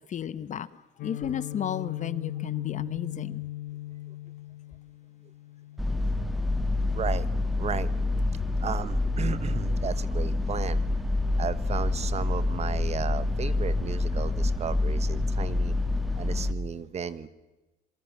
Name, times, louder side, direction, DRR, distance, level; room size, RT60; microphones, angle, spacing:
voice 1, 0.1-0.7 1.0-3.4, left 9 dB, 45° left, 1.0 m, -33 dB
Guitar, 1.0-8.8, left 14 dB, 80° left, 2.0 m, -39 dB
sound 1, 5.8-16.5, left 2 dB, ahead, 1.5 m, -27 dB
voice 2, 6.9-7.3 7.6-7.9 8.5-10.8 11.4-15.7 16.2-17.3, right 7 dB, 40° right, 1.4 m, -34 dB
26.5 x 23.5 x 7.4 m
cardioid pair, 110°, 17 cm